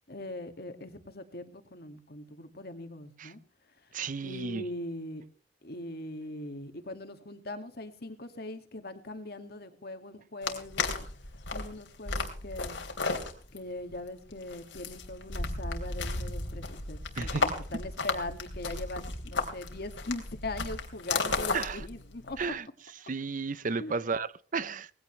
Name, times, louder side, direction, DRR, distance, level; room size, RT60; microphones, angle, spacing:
voice 1, 0.1-3.4 4.2-5.2 5.6-11.1 11.5-12.8 13.5-22.5 23.8-24.0, left 2 dB, 60° left, 2.1 m, -40 dB
voice 2, 3.9-4.7 17.2-17.5 21.5-21.8 22.4-22.7 23.0-24.9, right 4 dB, 45° right, 0.6 m, -33 dB
sound 1, 10.4-22.5, left 3 dB, 90° left, 3.1 m, -34 dB
19.5 x 16.0 x 3.3 m
head